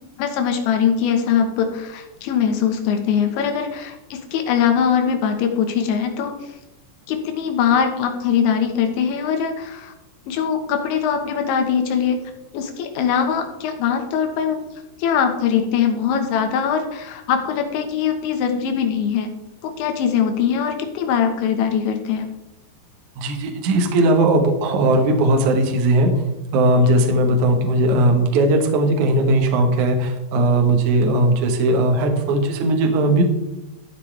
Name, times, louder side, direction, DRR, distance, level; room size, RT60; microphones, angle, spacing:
voice 1, 0.2-6.5 7.1-9.9 10.3-12.2 12.5-14.6 15.0-19.3 19.6-22.3, left 7 dB, 90° left, 4 dB, 3.5 m, -21 dB
voice 2, 23.2-26.1 26.5-33.2, right 1 dB, 70° right, 3 dB, 1.9 m, -18 dB
13.5 x 8.2 x 3.3 m, 0.96 s
omnidirectional pair, 5.2 m